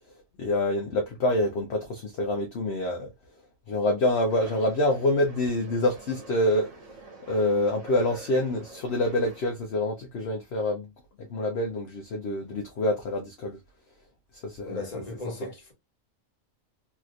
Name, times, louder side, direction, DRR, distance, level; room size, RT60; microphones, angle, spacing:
voice 1, 0.4-3.1 3.7-6.7 7.3-10.9 11.2-13.6 14.4-14.8 15.4-15.5, left 1 dB, 60° left, 0.9 m, -26 dB
sound 1, 4.3-9.5, right 3 dB, 60° right, 1.4 m, -46 dB
voice 2, 14.7-15.7, left 2 dB, 30° left, 1.2 m, -36 dB
3.2 x 2.8 x 2.3 m
omnidirectional pair, 1.4 m